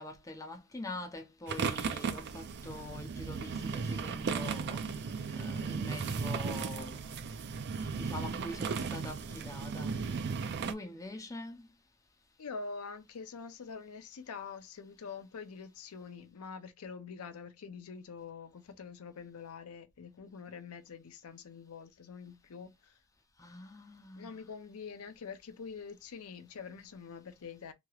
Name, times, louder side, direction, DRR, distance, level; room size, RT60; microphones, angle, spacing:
voice 1, 0.0-4.8 5.3-7.0 7.9-9.9 10.7-11.7 23.4-24.5, left 2 dB, 15° left, 0.6 m, -44 dB
sound 1, 1.5-10.7, right 5 dB, 50° right, 0.4 m, -36 dB
voice 2, 12.4-23.0 24.2-27.7, left 5 dB, 75° left, 0.5 m, -45 dB
3.0 x 2.9 x 2.3 m
head